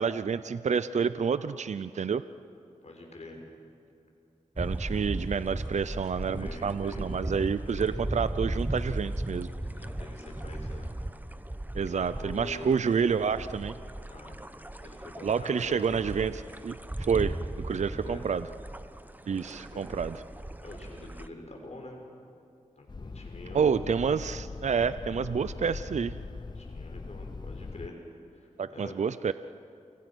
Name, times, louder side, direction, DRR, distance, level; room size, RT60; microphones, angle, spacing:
voice 1, 0.0-2.2 4.6-9.5 11.7-13.7 15.2-18.5 19.3-20.2 23.5-26.2 28.6-29.3, right 6 dB, 65° right, 14 dB, 0.6 m, -29 dB
voice 2, 2.8-3.4 6.3-7.1 7.6-8.1 9.6-10.9 11.9-12.7 14.1-14.4 14.8-15.9 17.7-18.3 19.4-19.9 20.6-22.0 22.8-23.7 26.4-28.0 28.3-29.0, left 2 dB, 60° left, 1 dB, 6.1 m, -45 dB
sound 1, 4.6-21.3, right 1 dB, 15° right, 1.1 m, -37 dB
sound 2, 22.9-27.9, left 3 dB, 35° left, 0.6 m, -41 dB
29.5 x 25.0 x 6.2 m, 2.5 s
cardioid pair, 60°, 13 cm